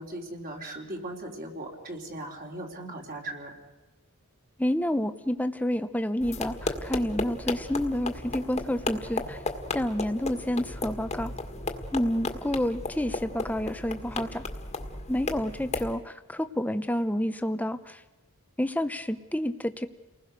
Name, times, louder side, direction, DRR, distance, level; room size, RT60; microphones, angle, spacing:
voice 1, 0.0-3.5, right 1 dB, 40° right, 1 dB, 3.8 m, -38 dB
voice 2, 4.6-9.4 9.7-11.3 11.9-14.4 15.1-18.0 18.6-19.9, left 1 dB, 5° left, 10 dB, 0.9 m, -29 dB
sound 1, 6.2-15.9, left 2 dB, 30° left, 1.9 m, -35 dB
30.0 x 20.0 x 6.7 m, 1.1 s
head